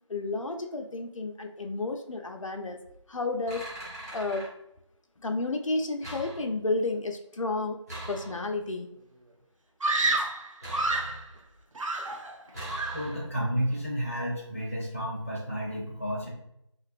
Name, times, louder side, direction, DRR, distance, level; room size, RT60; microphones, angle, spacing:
voice 1, 0.1-2.8 3.1-3.7 4.1-4.5 5.2-7.8 8.1-8.9 10.2-10.3, left 3 dB, 85° left, 4 dB, 0.4 m, -31 dB
sound 1, 2.7-3.0 3.4-4.5 6.0-6.8 7.9-8.7 10.6-11.6 12.5-13.5, right 1 dB, 30° right, 1.0 m, -42 dB
Screaming, 9.8-11.2 11.8-12.4 12.7-13.1, right 2 dB, 85° right, 0.4 m, -29 dB
voice 2, 12.9-16.3, equal, 25° left, -5 dB, 0.5 m, -31 dB
2.5 x 2.2 x 2.4 m, 0.76 s
figure-of-eight pair, 175°, 16 cm